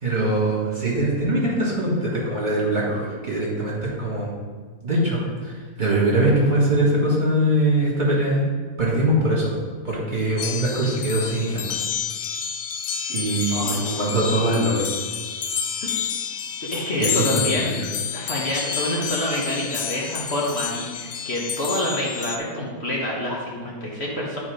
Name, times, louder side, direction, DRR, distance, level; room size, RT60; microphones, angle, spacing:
voice 1, 0.0-4.3 4.8-8.4 8.8-9.5 9.8-11.6 13.1-14.8 17.0-17.9, right 1 dB, 30° right, -5 dB, 2.0 m, -22 dB
sound 1, 10.4-22.4, left 7 dB, 60° left, 0.7 m, -29 dB
voice 2, 13.5-14.0 15.8-16.0 16.6-17.8 18.1-24.4, left 1 dB, 45° left, -4 dB, 1.5 m, -27 dB
9.9 x 4.2 x 5.0 m, 1.5 s
omnidirectional pair, 1.6 m